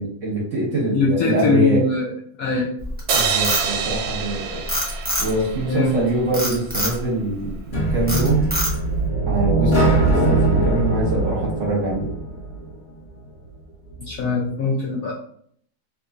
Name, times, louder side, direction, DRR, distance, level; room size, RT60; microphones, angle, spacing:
voice 1, 0.0-1.8 3.1-4.6 5.2-8.5 9.2-12.1, right 2 dB, 55° right, -3 dB, 0.9 m, -24 dB
voice 2, 0.9-2.1 2.4-2.7 5.7-6.0 14.1-15.1, left 4 dB, 70° left, -3 dB, 0.8 m, -21 dB
Frog, 2.8-4.3 4.7-5.6 6.3-7.0 7.5-7.7 8.1-9.0, equal, 10° right, 0.5 m, -25 dB
sound 1, 3.1-6.4, right 6 dB, 90° right, 1.3 m, -27 dB
sound 2, 7.7-12.7, right 2 dB, 40° left, 1.3 m, -21 dB
3.6 x 2.8 x 2.4 m, 0.64 s
omnidirectional pair, 2.0 m